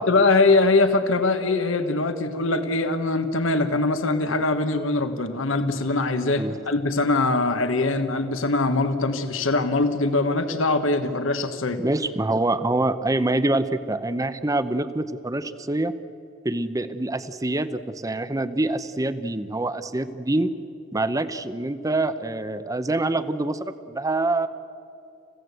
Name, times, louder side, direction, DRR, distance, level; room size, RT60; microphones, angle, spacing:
voice 1, 0.0-11.8, left 3 dB, 65° left, 8 dB, 1.3 m, -22 dB
voice 2, 11.8-15.9 16.4-20.5 20.9-24.5, right 2 dB, 15° right, 12 dB, 0.7 m, -25 dB
28.5 x 16.0 x 8.1 m, 2.6 s
head